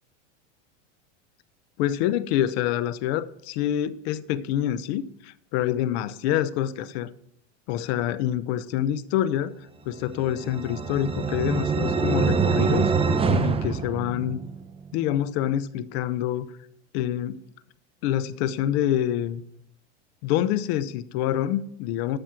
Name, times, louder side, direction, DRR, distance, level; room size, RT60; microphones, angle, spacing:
voice 1, 1.8-7.1 7.7-9.5 9.9-12.9 13.3-14.4 14.9-16.5 16.9-17.4 18.0-19.4 20.2-22.2, left 11 dB, 55° left, 0.8 m, -26 dB
sound 1, 10.1-14.6, right 5 dB, 15° right, 0.7 m, -25 dB
13.0 x 6.2 x 5.8 m
supercardioid pair, 120°, 37 cm